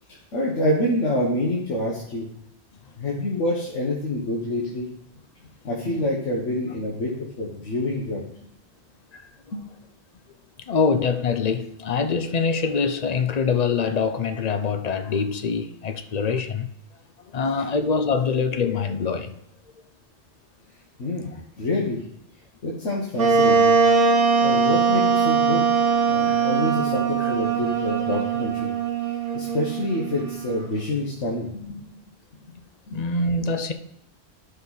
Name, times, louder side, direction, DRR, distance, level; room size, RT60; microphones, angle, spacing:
voice 1, 0.3-2.3 3.0-4.9 5.6-8.2 9.5-9.6 17.6-17.7 21.0-22.0 22.6-23.8 24.4-25.6 26.1-28.7 29.3-31.8 32.9-33.0, left 1 dB, 85° left, 1.6 m, -27 dB
voice 2, 10.7-16.7 17.3-19.3 32.9-33.7, left 5 dB, 45° left, 0.6 m, -24 dB
Wind instrument woodwind instrument, 23.2-30.6, right 5 dB, 55° right, 1.1 m, -21 dB
11.5 x 5.4 x 4.0 m
omnidirectional pair, 1.2 m